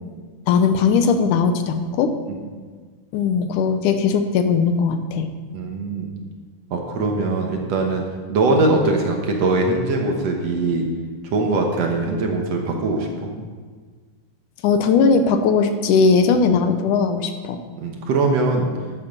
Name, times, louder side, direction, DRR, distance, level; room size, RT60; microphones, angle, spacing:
voice 1, 0.5-2.1 3.1-5.3 14.6-17.6, left 5 dB, 80° left, 8 dB, 2.3 m, -18 dB
voice 2, 5.5-6.1 6.7-10.8 11.3-13.3 16.3-16.5 17.8-18.7, right 3 dB, 60° right, 2 dB, 2.1 m, -21 dB
11.5 x 8.4 x 5.3 m, 1.5 s
omnidirectional pair, 3.6 m